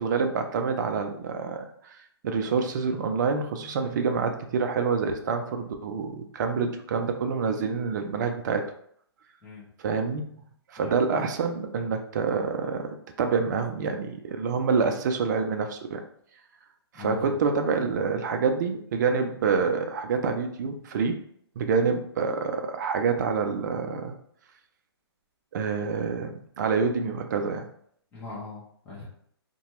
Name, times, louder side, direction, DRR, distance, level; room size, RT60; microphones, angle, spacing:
voice 1, 0.0-2.0 2.2-8.7 9.8-10.2 10.7-16.0 16.9-21.2 21.6-24.2 25.5-27.7, right 5 dB, 45° right, 5 dB, 0.4 m, -27 dB
voice 2, 16.9-17.3 28.1-29.0, left 4 dB, 10° left, -9 dB, 0.8 m, -40 dB
2.8 x 2.2 x 2.9 m, 0.66 s
hypercardioid pair, 145°, 14 cm